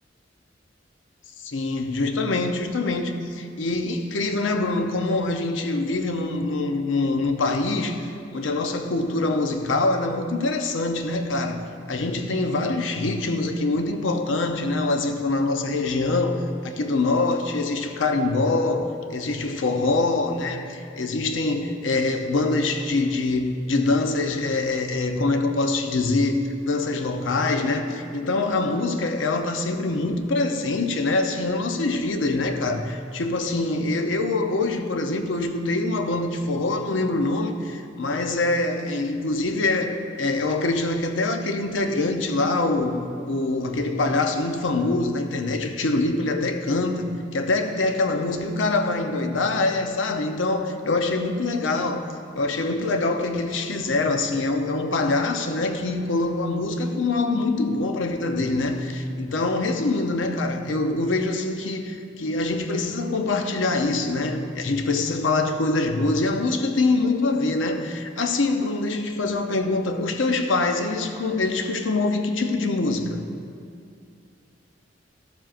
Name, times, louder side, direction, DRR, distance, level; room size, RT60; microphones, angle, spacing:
voice 1, 1.4-11.6 11.9-52.1 52.3-73.2, left 2 dB, 80° left, 6 dB, 0.7 m, -24 dB
13.5 x 7.4 x 2.5 m, 2.4 s
head